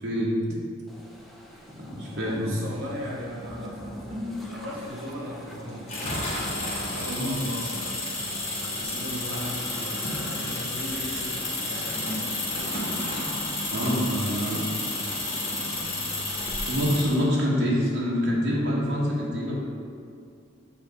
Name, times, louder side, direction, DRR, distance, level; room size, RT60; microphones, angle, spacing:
voice 1, 0.0-0.6 1.8-2.7 7.1-7.5 13.7-14.7 16.7-19.6, equal, 55° right, -5 dB, 1.0 m, -26 dB
sound 1, 0.9-16.6, left 1 dB, ahead, 0.5 m, -42 dB
voice 2, 2.1-5.9 6.5-12.8 14.0-14.9 17.2-17.5, equal, 85° right, -3 dB, 1.0 m, -38 dB
sound 2, 5.9-17.2, left 2 dB, 30° left, 1.0 m, -31 dB
7.1 x 2.7 x 5.1 m, 2.3 s
head